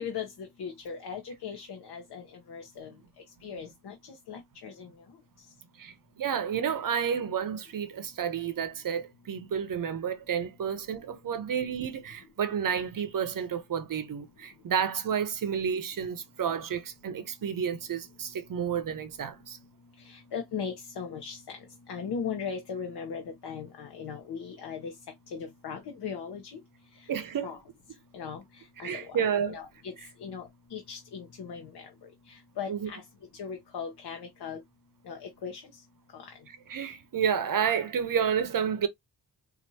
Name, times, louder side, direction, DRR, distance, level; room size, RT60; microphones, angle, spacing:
voice 1, 0.0-3.0 3.4-4.0 4.3-4.9 20.0-24.9 25.3-26.6 27.0-27.1 27.4-27.6 28.1-29.2 29.5-29.9 30.2-31.9 32.3-33.0 33.3-34.6 35.0-35.8 36.1-36.3, left 6 dB, 65° left, 0.9 m, -38 dB
voice 2, 5.8-19.6 27.1-27.5 28.8-29.6 32.7-32.9 36.5-38.9, right 7 dB, 55° right, 0.6 m, -30 dB
4.4 x 2.5 x 2.7 m
wide cardioid pair, 165°, 41 cm